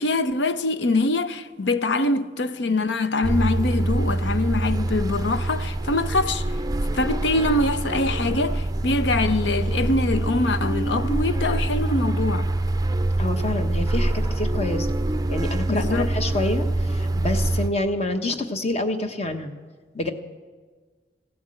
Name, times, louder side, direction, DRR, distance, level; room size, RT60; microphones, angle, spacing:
voice 1, 0.0-6.4 6.9-12.5 15.7-16.1, left 2 dB, 75° left, 0.7 m, -24 dB
sound 1, 3.2-17.7, right 2 dB, 20° right, 0.5 m, -25 dB
voice 2, 13.2-14.9 15.3-19.5 19.9-20.1, left 2 dB, 35° left, 1.1 m, -27 dB
16.0 x 12.0 x 7.6 m
head